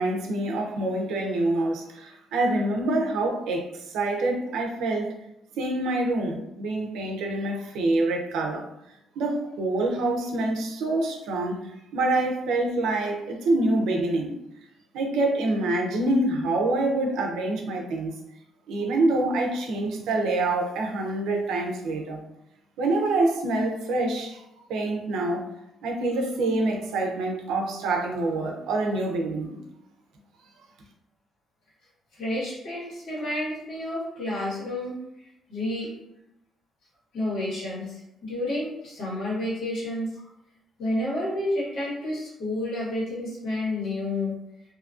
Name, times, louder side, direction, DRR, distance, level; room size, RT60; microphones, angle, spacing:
voice 1, 0.0-5.1 5.6-8.7 9.2-14.4 14.9-18.1 18.7-22.2 22.8-24.4 24.7-25.5 25.8-29.6, right 2 dB, 85° right, 1 dB, 0.5 m, -26 dB
voice 2, 32.2-34.9 35.5-35.9 37.1-40.2 40.8-44.4, left 1 dB, 80° left, -7 dB, 1.4 m, -30 dB
2.7 x 2.4 x 2.5 m, 0.83 s
cardioid pair, 90°, 0 cm